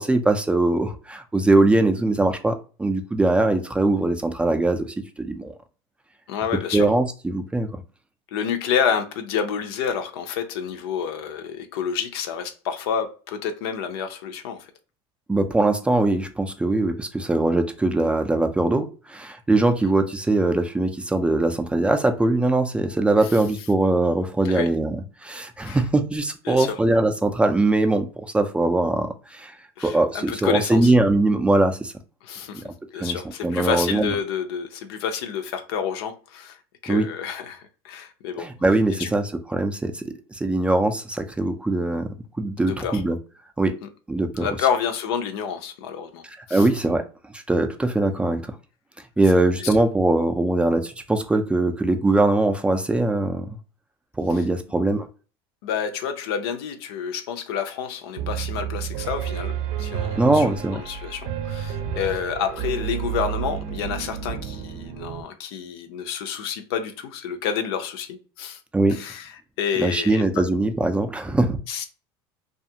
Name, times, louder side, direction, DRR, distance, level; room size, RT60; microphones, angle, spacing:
voice 1, 0.0-5.5 6.7-7.7 15.3-25.0 25.2-29.5 29.8-31.9 32.9-33.2 33.4-34.1 36.9-37.1 38.4-40.0 40.3-42.1 42.4-43.2 43.6-43.8 44.1-44.5 46.5-47.0 47.3-48.4 49.2-53.5 54.2-55.1 60.2-60.8 68.7-69.0 69.8-71.6, right 2 dB, 10° right, 0.3 m, -21 dB
voice 2, 6.3-6.9 8.3-14.7 19.8-19.9 23.2-23.4 24.4-24.7 25.6-25.8 26.5-26.8 29.8-30.9 32.2-32.6 32.9-36.6 36.8-38.5 39.0-39.1 42.6-43.0 43.8-43.9 44.4-46.2 46.5-46.7 49.6-49.7 55.6-68.6 68.9-70.4 71.7-71.8, left 7 dB, 80° left, 0.5 m, -29 dB
Piano, 58.2-65.2, right 9 dB, 55° right, 0.5 m, -30 dB
2.4 x 2.4 x 2.7 m
supercardioid pair, 115°, 13 cm